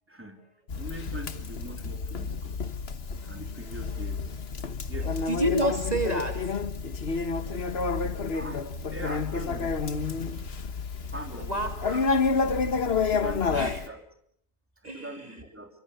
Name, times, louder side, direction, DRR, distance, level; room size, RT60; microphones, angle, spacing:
voice 1, 0.1-0.4 0.7-2.7 3.2-4.3 4.9-5.2 7.5-7.8 8.3-8.6 8.9-9.8 11.1-11.6 11.9-12.5 13.1-14.0 14.8-15.7, right 1 dB, 10° right, 4 dB, 3.3 m, -42 dB
Conversation, 0.7-13.9, left 4 dB, 65° left, 1.6 m, -29 dB
voice 2, 5.0-6.4 11.4-11.7 13.5-13.9 14.8-15.5, right 1 dB, 40° right, 5 dB, 2.8 m, -30 dB
27.5 x 25.0 x 6.7 m, 0.69 s
omnidirectional pair, 1.1 m